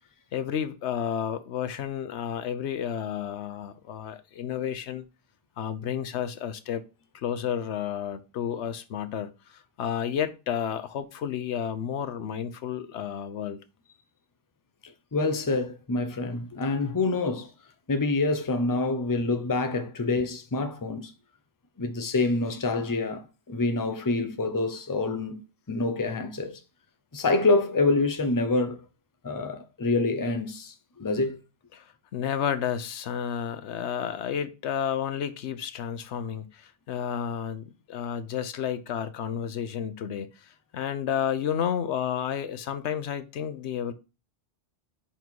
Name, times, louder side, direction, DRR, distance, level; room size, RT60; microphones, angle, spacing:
voice 1, 0.3-5.0 5.6-6.8 7.1-13.6 31.7-43.9, left 8 dB, 90° left, 1.0 m, -31 dB
voice 2, 14.8-17.5 17.9-21.1 21.8-25.4 25.7-26.6 27.1-28.8 29.2-31.4, left 3 dB, 20° left, 0.7 m, -26 dB
5.3 x 4.3 x 4.6 m
omnidirectional pair, 1.1 m